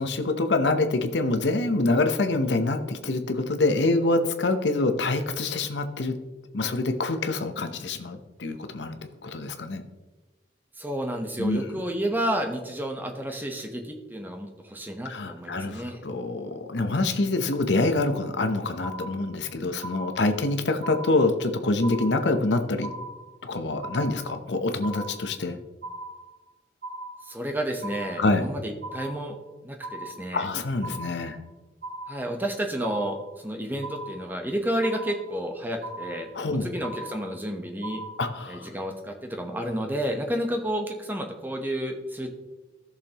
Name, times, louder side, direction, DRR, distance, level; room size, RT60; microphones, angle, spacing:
voice 1, 0.0-6.1 6.5-9.8 11.4-11.7 15.0-22.9 23.4-25.6 28.2-28.5 30.3-31.4 36.3-36.7 38.2-38.7, left 2 dB, 85° left, 7 dB, 0.8 m, -26 dB
voice 2, 10.8-16.0 27.2-29.4 29.6-30.5 32.1-38.0 38.5-42.3, equal, 10° right, 4 dB, 0.9 m, -31 dB
sound 1, 18.8-19.5 19.8-20.5 20.8-21.5 21.8-22.5 22.8-23.5 23.8-24.5 24.8-25.5 25.8-26.5 26.8-27.5 27.8-28.5 28.8-29.5 29.8-30.5 30.8-31.5 31.8-32.5 32.8-33.5 33.8-34.5 34.8-35.5 35.8-36.5 36.8-37.5 37.8-38.5, right 2 dB, 55° right, 1.6 m, -39 dB
15.0 x 6.7 x 2.9 m, 1.2 s
head